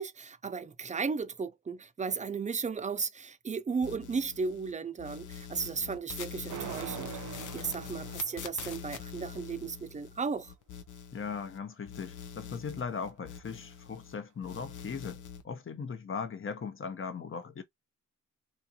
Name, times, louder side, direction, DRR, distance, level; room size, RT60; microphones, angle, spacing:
voice 1, 0.0-10.5, right 5 dB, 25° right, 0.4 m, -35 dB
sound 1, 3.8-4.7 5.0-11.6 11.9-14.2 14.4-15.4, left 7 dB, 85° left, 0.6 m, -44 dB
sound 2, 6.5-9.4, right 10 dB, 80° right, 0.6 m, -44 dB
voice 2, 11.1-17.6, left 5 dB, 45° left, 0.7 m, -39 dB
4.1 x 2.5 x 2.7 m
cardioid pair, 95°, 30 cm